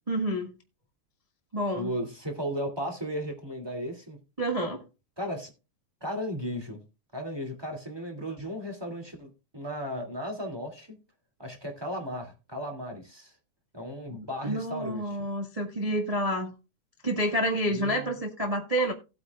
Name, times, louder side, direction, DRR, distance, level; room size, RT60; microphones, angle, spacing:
voice 1, 0.1-0.5 1.5-1.9 4.4-4.8 14.4-16.5 17.0-18.9, equal, 60° right, 0.4 m, -28 dB
voice 2, 1.7-4.2 5.2-5.5 6.0-6.8 7.1-11.0 11.4-13.3 13.7-15.2 17.7-18.1, equal, 10° right, 2.2 m, -35 dB
17.0 x 8.5 x 2.4 m
omnidirectional pair, 3.5 m